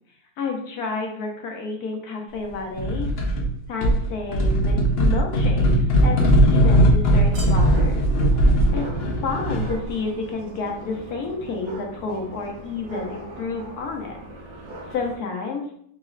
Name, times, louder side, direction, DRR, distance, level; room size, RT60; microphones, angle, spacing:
voice 1, 0.4-3.1 3.7-5.7 6.0-8.0 8.7-14.2 14.9-15.6, left 4 dB, 60° left, 2 dB, 1.1 m, -30 dB
sound 1, 2.8-3.5 3.8-9.8, equal, 90° left, 0.5 m, -19 dB
sound 2, 7.0-15.2, right 2 dB, 65° right, 1.6 m, -40 dB
4.1 x 3.0 x 3.8 m, 0.67 s
omnidirectional pair, 2.1 m